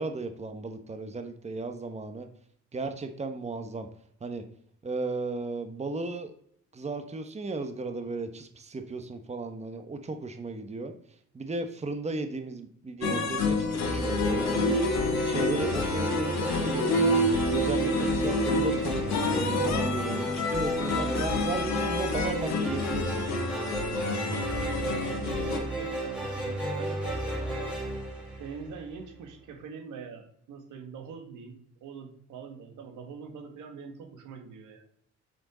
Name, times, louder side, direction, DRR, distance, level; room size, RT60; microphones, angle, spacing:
voice 1, 0.0-2.3 2.7-3.9 4.2-4.4 4.8-6.3 6.7-10.9 11.3-14.9 15.2-17.2 17.5-23.2, right 3 dB, 20° right, 7 dB, 1.0 m, -35 dB
sound 1, 13.0-25.6, left 2 dB, 65° left, 1.6 m, -28 dB
sound 2, 13.8-29.0, right 1 dB, 5° right, 3.8 m, -33 dB
voice 2, 24.5-27.7 28.4-31.6 31.8-34.9, right 6 dB, 90° right, 3 dB, 1.9 m, -43 dB
7.8 x 6.5 x 3.9 m, 0.65 s
cardioid pair, 90°, 30 cm